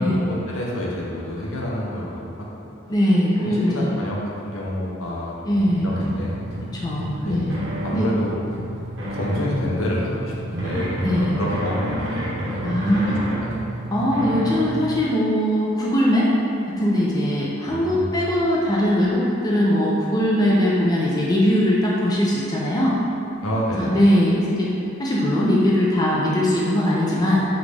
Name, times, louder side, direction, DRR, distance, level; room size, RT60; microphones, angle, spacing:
voice 1, 0.0-2.7 3.4-5.6 5.8-6.4 7.2-7.5 7.8-8.3 9.1-12.4 12.9-13.6 17.7-18.3 23.4-24.0, left 1 dB, 75° left, -4 dB, 0.8 m, -28 dB
voice 2, 2.9-3.9 5.5-6.1 6.7-7.6 7.9-8.1 11.0-11.4 12.6-13.3 13.9-16.3 16.7-23.0 23.8-24.7 25.0-27.4, equal, 20° left, -6 dB, 0.5 m, -20 dB
sound 1, 5.5-15.0, equal, 60° right, 0.9 m, -30 dB
5.1 x 2.5 x 3.3 m, 2.7 s
head